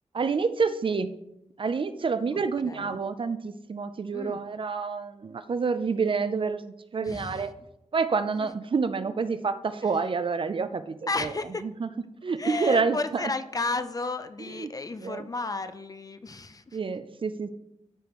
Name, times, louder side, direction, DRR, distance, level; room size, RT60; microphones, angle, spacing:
voice 1, 0.1-1.1 1.6-7.5 7.9-11.3 11.6-11.9 12.2-13.2 14.6-14.7 15.0-15.3 16.7-17.5, right 5 dB, 45° right, 11 dB, 0.4 m, -28 dB
voice 2, 2.6-3.0 4.1-4.4 7.0-7.5 9.8-10.0 11.1-11.7 12.4-16.8, left 3 dB, 30° left, 11 dB, 0.4 m, -33 dB
13.0 x 5.1 x 3.0 m, 0.85 s
wide cardioid pair, 140°, 12 cm